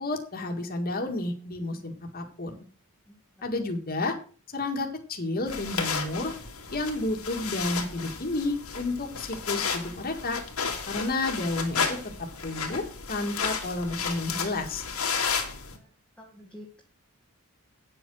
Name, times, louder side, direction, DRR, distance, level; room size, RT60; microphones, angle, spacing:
voice 1, 0.0-2.6 3.4-4.2 4.5-6.3 6.7-10.4 10.9-12.0 12.4-14.8, left 2 dB, 45° left, 3 dB, 2.1 m, -31 dB
sound 1, 5.5-15.8, left 6 dB, 85° left, 2.6 m, -33 dB
voice 2, 15.7-16.8, left 1 dB, 5° left, -2 dB, 1.8 m, -49 dB
9.1 x 7.8 x 6.3 m, 0.40 s
head